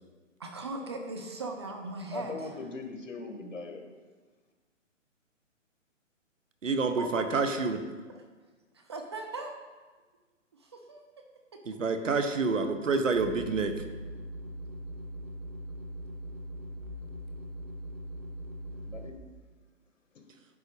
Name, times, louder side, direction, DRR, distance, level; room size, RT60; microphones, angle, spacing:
voice 1, 0.4-2.5 7.0-7.3 7.7-7.8 8.1-8.2 8.7-9.5 10.6-11.0 11.5-11.6, right 2 dB, 20° right, 3 dB, 0.5 m, -39 dB
voice 2, 2.1-3.8 18.9-19.1 20.1-20.2, left 3 dB, 75° left, 4 dB, 1.8 m, -40 dB
voice 3, 6.6-7.8 11.7-13.8, right 4 dB, 75° right, 8 dB, 1.1 m, -28 dB
sound 1, 13.1-19.1, equal, 90° right, 1.8 m, -41 dB
10.0 x 4.0 x 6.7 m, 1.3 s
hypercardioid pair, 140°, 39 cm